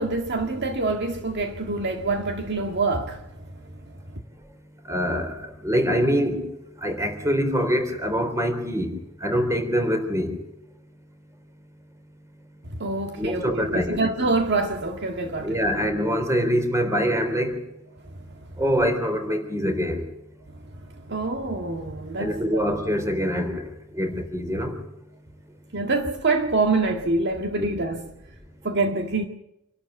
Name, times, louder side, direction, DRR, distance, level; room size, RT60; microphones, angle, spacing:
voice 1, 0.0-3.3 12.7-15.6 20.7-22.6 25.7-28.0 28.6-29.3, right 3 dB, 55° right, 1.9 m, -26 dB
voice 2, 4.9-6.5 6.8-8.9 9.2-10.4 13.2-14.0 15.4-17.6 18.6-20.1 22.2-23.6 23.9-24.8 27.6-27.7, equal, 15° right, 3.7 m, -24 dB
27.0 x 12.5 x 8.1 m
head